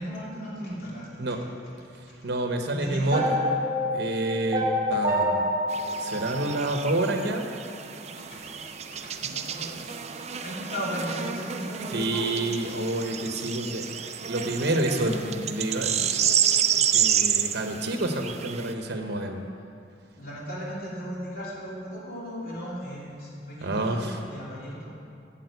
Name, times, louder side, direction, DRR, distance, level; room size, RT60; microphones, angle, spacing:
voice 1, 0.0-1.1 2.1-2.2 2.7-3.3 8.2-8.5 8.9-9.9 10.4-12.3 13.9-14.0 20.2-24.9, equal, 55° left, -6 dB, 2.7 m, -36 dB
voice 2, 2.2-3.2 3.9-5.4 6.0-7.5 11.9-16.3 16.9-19.4 23.6-24.2, right 1 dB, 65° right, 4 dB, 0.9 m, -28 dB
sound 1, 3.1-7.3, equal, 20° right, 1.6 m, -27 dB
sound 2, 5.7-18.7, right 9 dB, 35° right, 0.5 m, -29 dB
8.9 x 7.4 x 8.0 m, 2.5 s
head